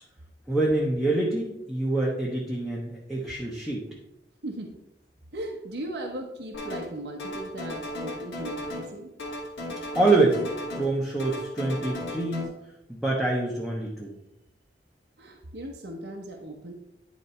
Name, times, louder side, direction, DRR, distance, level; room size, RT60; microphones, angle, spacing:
voice 1, 0.5-3.9 9.9-10.4 10.7-12.5 12.9-14.1, right 2 dB, ahead, -5 dB, 1.0 m, -26 dB
voice 2, 5.3-9.1 15.2-16.7, right 1 dB, 70° right, 1 dB, 1.0 m, -37 dB
sound 1, 6.5-6.9 7.2-8.9 9.2-10.9 11.2-12.4, left 1 dB, 85° left, 2.1 m, -35 dB
10.0 x 4.1 x 4.3 m, 0.86 s
head